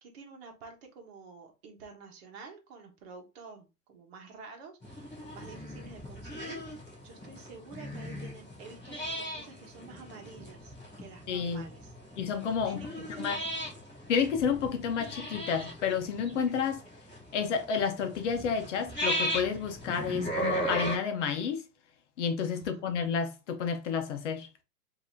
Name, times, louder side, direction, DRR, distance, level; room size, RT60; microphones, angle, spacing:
voice 1, 0.0-11.9 12.6-13.7 22.5-22.8, right 4 dB, 40° right, 1.4 m, -50 dB
sound 1, 4.8-21.0, equal, 5° left, 0.4 m, -37 dB
voice 2, 11.3-11.6 12.2-12.9 13.2-13.4 14.1-16.8 17.3-21.6 22.2-24.5, left 6 dB, 50° left, 0.9 m, -30 dB
5.4 x 2.9 x 2.7 m
hypercardioid pair, 160°, 47 cm